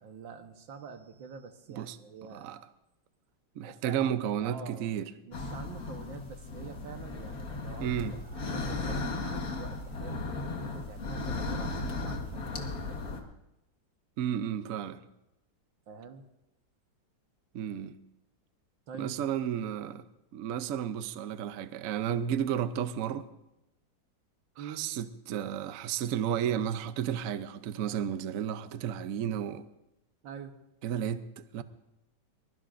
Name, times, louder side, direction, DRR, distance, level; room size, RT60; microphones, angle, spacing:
voice 1, 0.0-2.5 3.6-4.1 4.4-4.9 5.3-13.2 15.9-16.3 18.9-19.2 24.6-24.9 30.2-30.6, right 6 dB, 90° right, 1.9 m, -46 dB
voice 2, 3.6-5.1 7.8-8.2 14.2-15.0 17.5-18.0 19.0-20.1 20.3-23.3 24.6-29.7 30.8-31.6, right 9 dB, 60° right, 0.9 m, -32 dB
sound 1, 5.3-13.2, left 3 dB, 55° left, 2.0 m, -36 dB
23.0 x 21.5 x 2.6 m
omnidirectional pair, 2.0 m